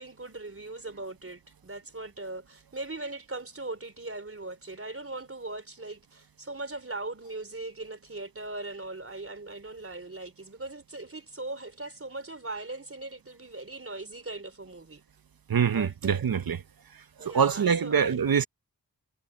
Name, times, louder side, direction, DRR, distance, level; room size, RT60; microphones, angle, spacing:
voice 1, 0.0-15.0 15.7-16.3 17.2-18.2, right 2 dB, 35° right, 3.7 m, -39 dB
voice 2, 15.5-16.6 17.2-18.4, right 7 dB, 70° right, 0.9 m, -24 dB
cardioid pair, 50°, 37 cm